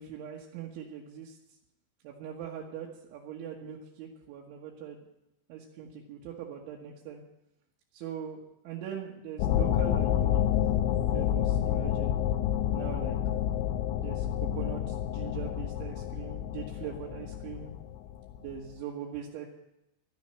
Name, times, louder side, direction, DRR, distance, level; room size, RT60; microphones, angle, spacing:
voice 1, 0.0-1.4 2.0-5.0 5.5-7.2 7.9-10.4 11.1-12.2 12.7-13.2 14.0-17.7 18.4-19.5, right 8 dB, 75° right, -3 dB, 3.7 m, -41 dB
sound 1, 9.4-18.5, left 10 dB, 80° left, 2.7 m, -29 dB
13.5 x 7.6 x 9.9 m, 0.88 s
omnidirectional pair, 5.7 m